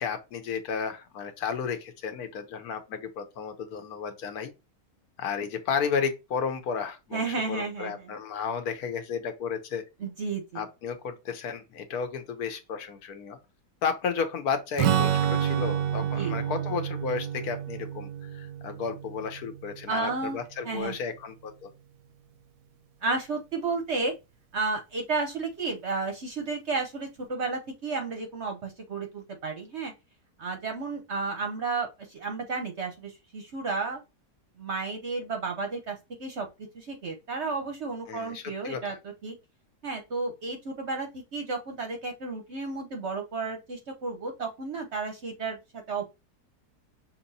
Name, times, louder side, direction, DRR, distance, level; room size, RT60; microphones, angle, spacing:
voice 1, 0.0-4.5 5.2-9.8 10.5-13.4 13.8-21.7 38.1-39.0, left 6 dB, 70° left, 1.2 m, -33 dB
voice 2, 7.1-7.9 10.0-10.6 16.2-16.3 19.9-20.4 20.6-21.0 23.0-24.1 24.5-29.9 30.4-34.0 34.6-36.5 36.7-38.9 39.2-39.4 39.8-45.6 45.9-46.0, right 4 dB, 55° right, 0.8 m, -32 dB
Strum, 14.8-20.4, right 9 dB, 90° right, 1.2 m, -29 dB
5.8 x 2.9 x 2.6 m
omnidirectional pair, 1.8 m